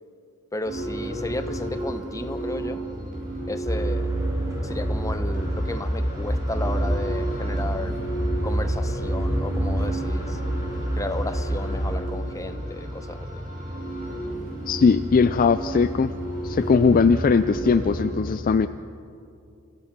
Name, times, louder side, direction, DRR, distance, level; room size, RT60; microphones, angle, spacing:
voice 1, 0.5-2.8 3.5-4.1 4.6-7.9 8.4-10.4 11.0-13.4, left 2 dB, 15° left, 9 dB, 0.9 m, -33 dB
sound 1, 0.6-18.1, right 1 dB, 40° right, 5.5 m, -31 dB
sound 2, 3.7-12.0, right 1 dB, 15° right, 3.0 m, -28 dB
voice 2, 14.7-16.1 16.4-18.7, left 5 dB, 40° left, 12 dB, 0.4 m, -19 dB
29.0 x 15.5 x 6.0 m, 2.6 s
head